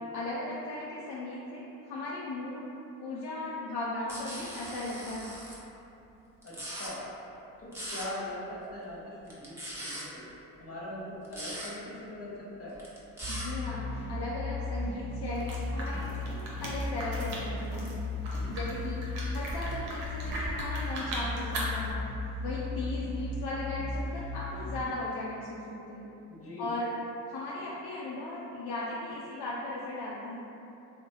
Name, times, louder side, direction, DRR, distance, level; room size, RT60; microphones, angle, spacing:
voice 1, 0.1-2.6 3.0-5.4 13.3-18.0 18.5-22.0 22.4-26.1 26.6-26.9 27.3-30.4, left 2 dB, 65° left, -6 dB, 0.5 m, -37 dB
sound 1, 4.1-5.5 6.4-6.9 7.7-8.1 9.3-10.0 11.2-11.7 12.8-13.5, equal, 5° right, 1.0 m, -40 dB
voice 2, 6.4-7.1 7.6-10.3 10.6-12.8 26.3-26.7, left 1 dB, 35° left, -6 dB, 1.0 m, -41 dB
sound 2, 13.2-24.8, left 2 dB, 15° left, 1.3 m, -36 dB
sound 3, 15.2-21.9, right 1 dB, 85° right, 0.6 m, -39 dB
3.1 x 2.0 x 3.0 m, 2.9 s
hypercardioid pair, 45°, 42 cm